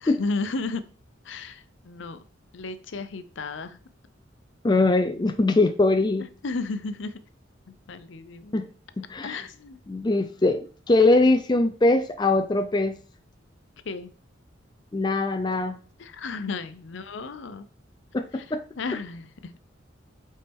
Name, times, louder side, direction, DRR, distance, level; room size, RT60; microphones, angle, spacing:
voice 1, 0.0-0.9 1.2-2.2 2.5-3.8 6.4-7.2 7.7-8.5 9.2-9.8 13.8-14.1 16.0-17.7 18.3-19.6, left 3 dB, 70° left, 11 dB, 0.6 m, -34 dB
voice 2, 4.6-6.3 8.5-8.7 9.0-9.4 9.9-13.0 14.9-15.8 18.1-18.6, left 2 dB, 20° left, 8 dB, 0.4 m, -22 dB
8.2 x 4.4 x 3.5 m, 0.40 s
head